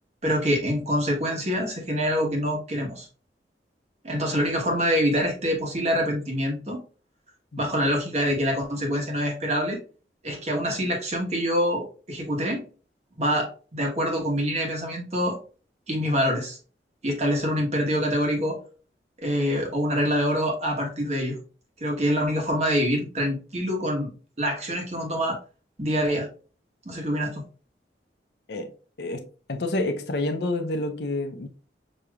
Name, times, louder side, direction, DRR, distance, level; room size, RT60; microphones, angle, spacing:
voice 1, 0.2-3.1 4.0-6.8 7.6-9.8 10.2-12.6 13.2-15.4 15.9-16.6 17.0-18.6 19.2-21.4 21.8-24.1 24.4-25.4 25.8-26.3 26.8-27.4, equal, 40° right, 1.2 m, -25 dB
voice 2, 29.0-31.5, left 2 dB, 65° left, 0.6 m, -28 dB
6.4 x 2.8 x 2.3 m
head